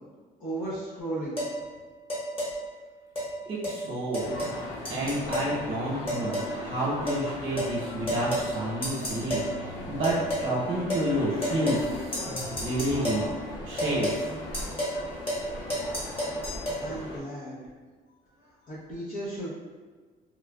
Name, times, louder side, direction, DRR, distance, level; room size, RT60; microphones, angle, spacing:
voice 1, 0.4-1.4 16.8-17.6 18.7-19.5, right 1 dB, 50° left, -9 dB, 0.7 m, -35 dB
sound 1, 1.4-1.5 2.1-2.5 3.1-3.3 3.6-3.8 4.1-4.6 4.8-5.5 6.1-6.5 7.1-7.2 7.6-7.7 8.1-8.5 8.8-9.5 10.0-10.5 10.9-11.1 11.4-11.9 12.1-13.3 13.8-14.2 14.5-15.0 15.3-15.4 15.7-16.8, equal, 35° left, 1.2 m, -31 dB
voice 2, 3.4-4.3 4.9-10.1 10.4-12.2 12.6-13.3 13.6-14.3, right 1 dB, 40° right, -8 dB, 0.9 m, -30 dB
sound 2, 4.2-17.2, left 1 dB, 85° left, 0.6 m, -38 dB
3.1 x 2.3 x 2.3 m, 1.4 s
cardioid pair, 110°, 17 cm